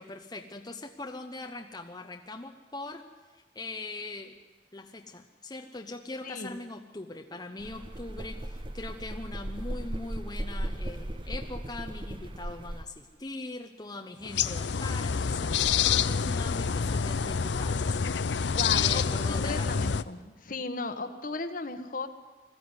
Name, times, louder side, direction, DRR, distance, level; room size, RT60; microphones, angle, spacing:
voice 1, 0.0-4.4 4.7-18.0 18.7-19.7, left 2 dB, 25° left, 4 dB, 0.9 m, -41 dB
voice 2, 6.2-6.5 18.5-22.1, left 3 dB, 50° left, 9 dB, 1.4 m, -36 dB
sound 1, 7.6-12.8, right 1 dB, 30° right, 1.0 m, -37 dB
sound 2, 14.2-20.0, left 6 dB, 90° left, 0.6 m, -27 dB
21.0 x 14.5 x 9.7 m, 1.3 s
head